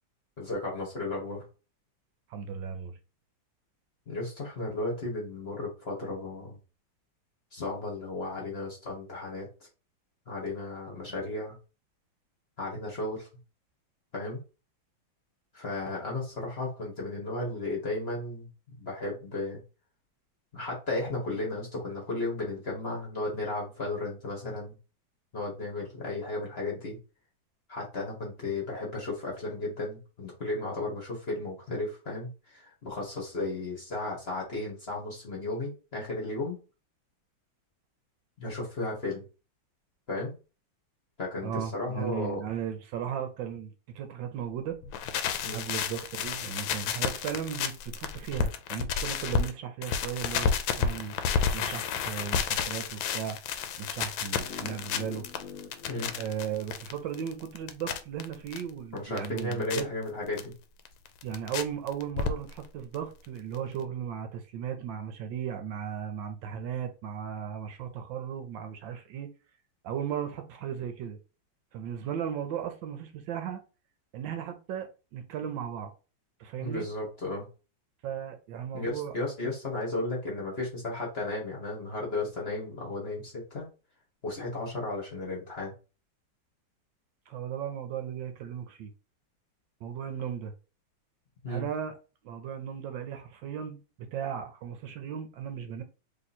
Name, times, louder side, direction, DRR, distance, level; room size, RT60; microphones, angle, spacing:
voice 1, 0.4-1.4 4.1-6.6 7.5-9.5 10.3-11.6 12.6-13.3 14.1-14.4 15.5-18.5 18.8-19.6 20.5-24.7 25.3-27.0 27.7-36.6 38.4-39.3 40.1-40.4 41.2-42.4 45.4-45.6 55.9-56.1 58.9-60.5 76.6-77.5 78.7-83.7 84.2-85.7 91.4-91.6, left 2 dB, 35° left, 1.2 m, -34 dB
voice 2, 2.3-3.0 41.4-44.8 45.5-50.5 50.8-53.4 53.8-55.3 56.2-59.9 61.2-69.3 69.8-71.2 71.7-73.6 74.1-75.9 76.4-76.9 78.0-79.1 87.3-88.9 89.8-90.5 91.5-91.9 92.2-93.8 94.1-95.8, right 8 dB, 75° right, 1.3 m, -36 dB
sound 1, 44.8-49.5 49.8-58.6 59.0-59.8 60.4-60.5 60.9-61.6 61.9-62.7 62.9-63.0 63.2-63.3 63.5-63.6, left 6 dB, 80° left, 1.3 m, -31 dB
sound 2, 54.3-57.4, left 7 dB, 65° left, 1.0 m, -46 dB
3.2 x 2.9 x 4.1 m
omnidirectional pair, 2.1 m